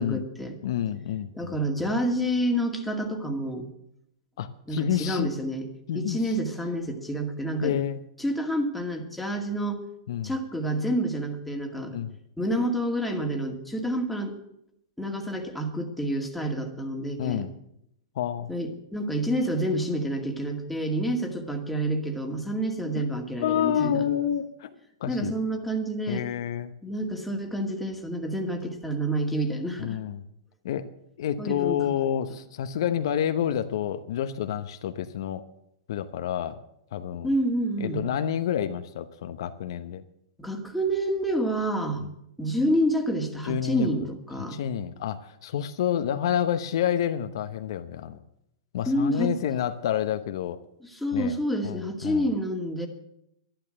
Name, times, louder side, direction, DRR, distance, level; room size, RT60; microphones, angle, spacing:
voice 1, 0.0-0.6 1.3-3.7 4.7-5.7 5.9-7.7 8.2-9.8 10.2-12.0 12.4-14.4 15.0-17.5 18.5-24.0 25.1-26.3 26.8-30.0 31.4-32.0 37.2-38.1 40.4-42.0 42.4-44.6 48.9-49.3 50.8-52.9, right 1 dB, ahead, 1 dB, 2.2 m, -28 dB
voice 2, 0.6-1.5 4.4-5.3 5.9-6.2 7.6-8.0 10.1-10.3 11.9-12.1 17.2-17.5 18.1-18.5 22.9-23.0 23.4-24.7 25.0-25.3 26.1-26.7 29.8-30.2 30.6-30.9 31.2-35.4 35.9-36.6 36.9-37.3 37.8-40.0 42.0-42.1 43.4-43.9 44.4-48.2 48.7-50.6 51.1-51.4 51.6-52.3, left 10 dB, 65° left, 8 dB, 1.0 m, -28 dB
12.0 x 11.5 x 7.6 m, 0.77 s
hypercardioid pair, 125°, 3 cm